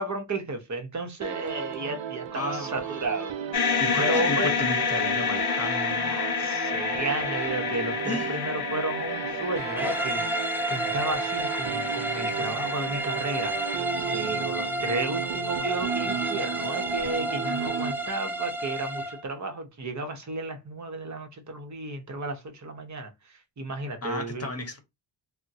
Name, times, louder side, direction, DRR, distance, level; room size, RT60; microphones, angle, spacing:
voice 1, 0.0-3.3 4.0-4.5 6.0-24.5, right 2 dB, 40° right, 0.8 m, -33 dB
sound 1, 1.2-18.4, right 9 dB, 80° right, 0.6 m, -35 dB
voice 2, 2.3-3.1 3.8-6.1 8.0-8.7 24.0-24.8, left 1 dB, 35° left, 1.0 m, -34 dB
sound 2, 3.5-13.8, left 6 dB, 60° left, 0.6 m, -30 dB
sound 3, 9.8-19.2, right 1 dB, 5° right, 0.4 m, -31 dB
3.6 x 2.1 x 2.6 m
wide cardioid pair, 95°, 45 cm